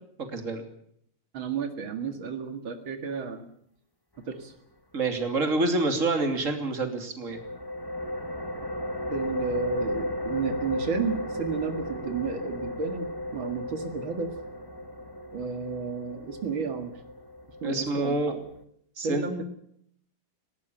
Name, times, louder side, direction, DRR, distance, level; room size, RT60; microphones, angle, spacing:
voice 1, 0.2-0.7 4.9-7.4 17.6-18.4 19.0-19.3, right 2 dB, 40° right, 6 dB, 3.3 m, -27 dB
voice 2, 1.3-3.5 4.3-4.5 9.1-14.3 15.3-16.9 17.6-18.4 19.0-19.4, right 5 dB, 80° right, 7 dB, 2.7 m, -32 dB
sound 1, 7.3-18.6, left 1 dB, 10° left, 1.7 m, -35 dB
19.5 x 18.5 x 9.1 m, 0.69 s
omnidirectional pair, 2.1 m